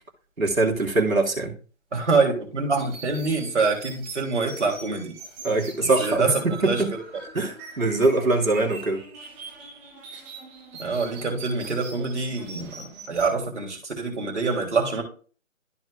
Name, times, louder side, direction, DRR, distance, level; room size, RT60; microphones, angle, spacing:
voice 1, 0.4-1.5 5.4-6.9 7.3-9.0 10.1-10.2, right 2 dB, 90° right, 0 dB, 2.6 m, -23 dB
voice 2, 1.9-5.1 5.8-7.0 10.7-15.0, right 4 dB, 60° right, 0 dB, 3.6 m, -25 dB
sound 1, 2.8-13.3, right 3 dB, 10° right, 1.4 m, -43 dB
13.5 x 4.8 x 2.6 m, 0.41 s
figure-of-eight pair, 155°, 40 cm